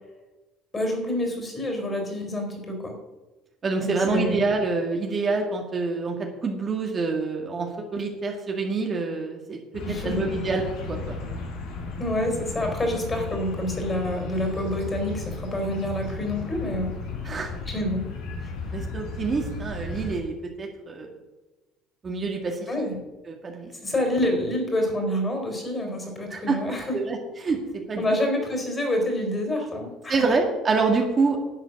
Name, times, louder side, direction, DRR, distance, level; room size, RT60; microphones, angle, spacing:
voice 1, 0.7-2.9 3.8-4.4 9.8-10.3 12.0-16.9 17.7-18.0 22.7-23.0 23.8-27.0 28.0-30.3, left 1 dB, 20° left, 3 dB, 3.9 m, -27 dB
voice 2, 3.6-6.1 6.4-9.6 10.0-10.6 10.9-11.2 17.2-17.5 18.7-21.1 22.0-22.9 23.3-23.7 26.3-26.6 26.9-27.6 27.9-28.1 30.1-31.4, right 4 dB, 30° right, 1 dB, 1.8 m, -26 dB
sound 1, 9.7-20.2, left 3 dB, 75° left, 4.1 m, -34 dB
11.0 x 8.0 x 6.4 m, 1.1 s
cardioid pair, 120°, 0 cm